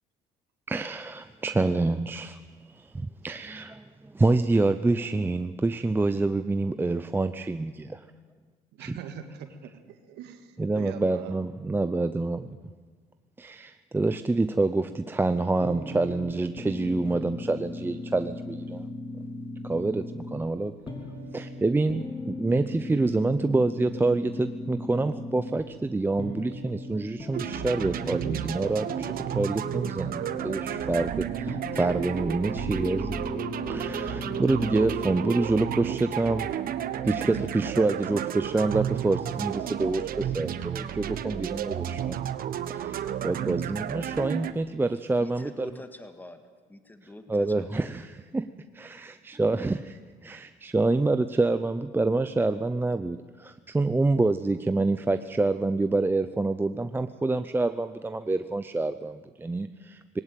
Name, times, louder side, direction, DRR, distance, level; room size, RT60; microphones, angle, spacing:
voice 1, 0.7-2.4 2.7-8.0 8.8-9.0 10.6-12.6 13.4-18.9 19.7-20.0 20.3-20.8 21.3-33.2 33.7-36.5 37.0-42.2 42.7-45.7 47.3-60.2, right 2 dB, 10° right, 10 dB, 0.6 m, -27 dB
voice 2, 8.8-11.4, right 8 dB, 85° right, 6 dB, 1.8 m, -43 dB
sound 1, 15.6-35.5, left 2 dB, 30° left, 3.0 m, -38 dB
sound 2, 27.3-44.5, right 10 dB, 60° right, 1.2 m, -32 dB
voice 3, 45.2-46.4 46.7-47.9, left 1 dB, 10° left, 8 dB, 1.8 m, -45 dB
19.5 x 18.0 x 9.1 m, 1.4 s
cardioid pair, 110°, 17 cm